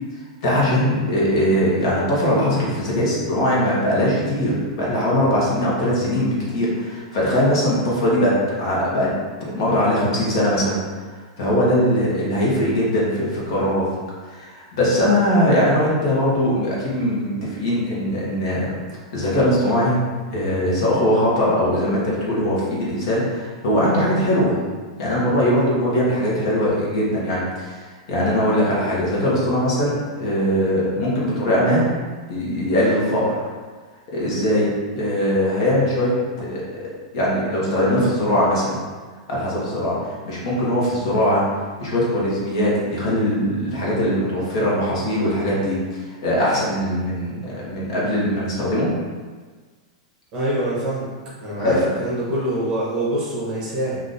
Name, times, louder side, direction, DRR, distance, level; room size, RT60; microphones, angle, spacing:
voice 1, 0.4-8.3 8.6-9.1 9.4-10.8 11.4-13.9 14.3-18.7 19.1-20.0 20.3-24.6 25.0-31.9 32.3-33.4 34.1-36.9 37.1-38.8 39.3-41.4 41.8-48.9 51.6-51.9, equal, 50° left, -5 dB, 1.0 m, -21 dB
voice 2, 50.3-51.1 51.4-54.0, right 1 dB, 25° right, -7 dB, 0.9 m, -25 dB
3.7 x 2.4 x 2.6 m, 1.4 s
supercardioid pair, 170°, 3 cm